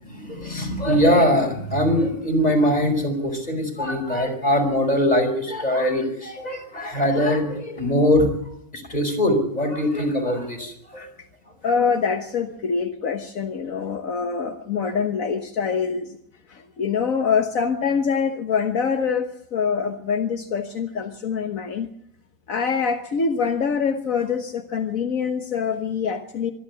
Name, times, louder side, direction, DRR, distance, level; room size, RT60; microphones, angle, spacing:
voice 1, 0.1-8.3 8.7-11.1, left 1 dB, 30° left, 3 dB, 5.4 m, -22 dB
voice 2, 11.6-16.1 16.5-21.9 22.5-26.5, left 6 dB, 70° left, 5 dB, 1.7 m, -24 dB
25.0 x 12.5 x 8.4 m, 0.72 s
omnidirectional pair, 1.5 m